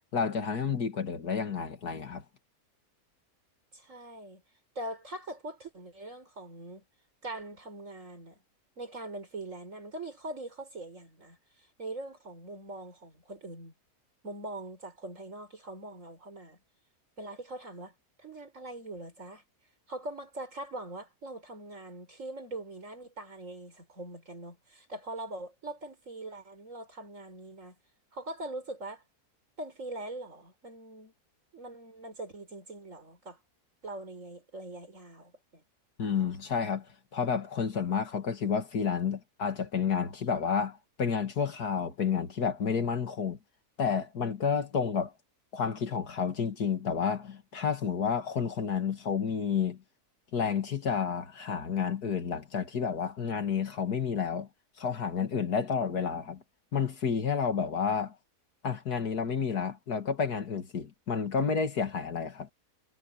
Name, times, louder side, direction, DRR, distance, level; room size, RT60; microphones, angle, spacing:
voice 1, 0.1-2.2 36.0-36.9 37.1-43.4 43.8-45.1 45.5-49.8 50.3-54.5 54.8-56.4 56.7-58.1 58.6-62.5, left 6 dB, 80° left, 2.5 m, -30 dB
voice 2, 3.7-4.4 4.7-6.8 7.2-8.4 8.8-13.7 14.2-16.6 17.2-19.4 19.9-27.8 28.1-29.0 29.6-31.1 31.5-33.4 33.8-35.6, right 2 dB, 50° right, 4.9 m, -42 dB
omnidirectional pair, 1.7 m